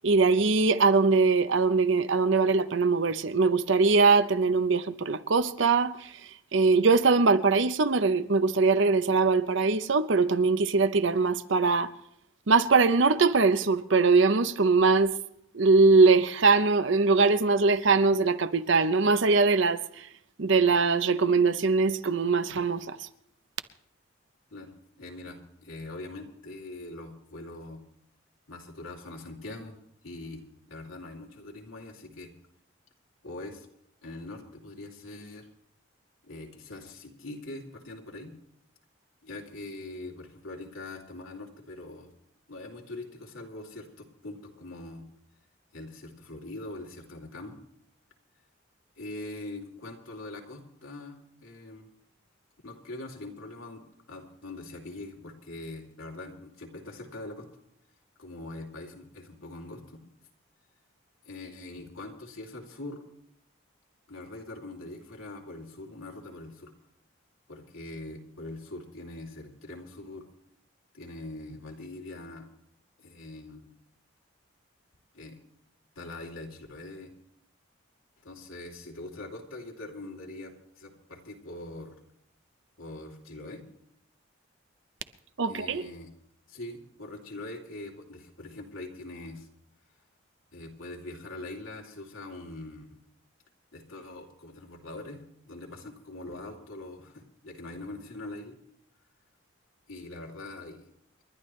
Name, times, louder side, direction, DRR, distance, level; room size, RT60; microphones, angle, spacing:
voice 1, 0.0-11.9 12.5-15.2 15.5-20.1 20.4-23.1 85.4-85.9, right 4 dB, 65° right, 0.7 m, -22 dB
voice 2, 24.5-27.8 28.5-29.8 30.0-32.3 33.2-33.7 34.0-35.5 36.2-38.3 39.2-42.1 42.5-45.0 45.7-47.6 49.0-51.9 52.6-57.5 58.2-60.0 61.2-63.0 64.1-66.7 67.5-70.3 70.9-72.5 73.0-73.7 75.1-75.4 75.9-77.1 78.2-82.0 82.8-83.6 85.5-86.1 86.5-89.5 90.5-93.0 93.7-98.6 99.9-100.8, left 2 dB, 85° left, 3.0 m, -42 dB
29.0 x 11.5 x 3.2 m
head